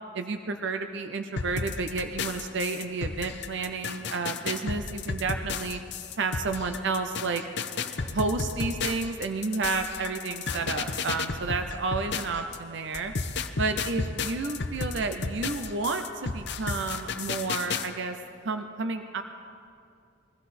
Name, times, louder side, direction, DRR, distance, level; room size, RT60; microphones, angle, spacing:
voice 1, 0.1-5.8 6.2-7.4 8.1-13.1 13.6-18.2 18.4-19.2, right 4 dB, 65° right, 7 dB, 0.6 m, -31 dB
sound 1, 1.4-12.6 12.9-17.9, left 4 dB, 60° left, 0.7 m, -33 dB
21.0 x 14.5 x 4.2 m, 2.4 s
head